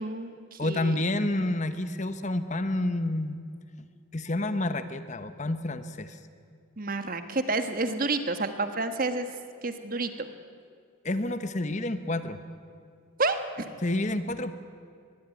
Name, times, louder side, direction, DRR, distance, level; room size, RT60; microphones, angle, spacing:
voice 1, 0.0-0.9 6.8-9.3 9.6-10.3 13.2-13.6, right 3 dB, 40° right, 8 dB, 1.5 m, -29 dB
voice 2, 0.6-3.4 4.1-6.2 11.0-12.4 13.8-14.5, left 1 dB, 35° left, 11 dB, 1.1 m, -29 dB
23.5 x 21.5 x 9.3 m, 2.2 s
head